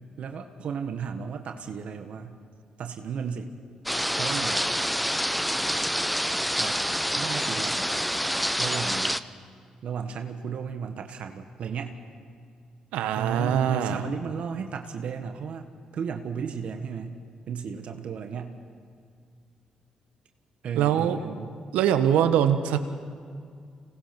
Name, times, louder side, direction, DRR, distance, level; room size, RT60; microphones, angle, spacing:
voice 1, 0.2-2.4 2.8-3.5 4.1-4.6 6.6-7.9 8.6-9.2 9.8-12.0 13.1-17.2 17.5-18.6 20.6-21.5, right 6 dB, 65° right, 6 dB, 1.4 m, -34 dB
sound 1, 3.9-9.2, equal, ahead, 0.8 m, -27 dB
voice 2, 12.9-14.0 20.7-21.2 21.7-22.8, right 9 dB, 90° right, 9 dB, 1.2 m, -23 dB
26.0 x 19.0 x 6.0 m, 2.2 s
supercardioid pair, 60°, 2 cm